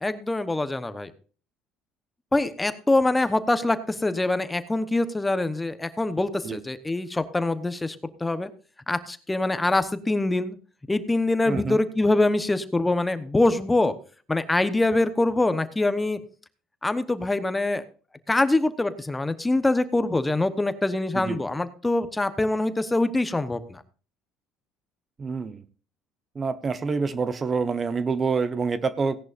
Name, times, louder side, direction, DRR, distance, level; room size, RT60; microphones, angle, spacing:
voice 1, 0.0-1.1 2.3-8.5 8.9-10.6 10.9-13.9 14.3-16.2 16.8-17.8 18.3-23.8, left 2 dB, 15° left, 11 dB, 1.0 m, -24 dB
voice 2, 11.5-11.8 21.1-21.4 25.2-25.6 26.3-29.2, right 5 dB, 35° right, 13 dB, 1.0 m, -27 dB
17.0 x 10.5 x 2.6 m, 0.39 s
supercardioid pair, 80°, 0 cm